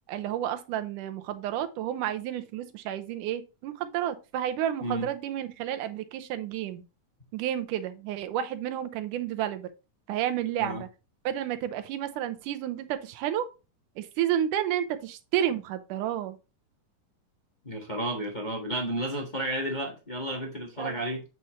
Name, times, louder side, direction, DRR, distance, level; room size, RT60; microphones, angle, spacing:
voice 1, 0.1-6.8 7.3-9.7 10.1-10.9 11.3-13.4 14.0-16.4 20.8-21.0, right 11 dB, 80° right, 2.3 m, -31 dB
voice 2, 17.6-21.2, right 1 dB, 40° left, 0.6 m, -32 dB
8.0 x 5.7 x 3.0 m
omnidirectional pair, 3.8 m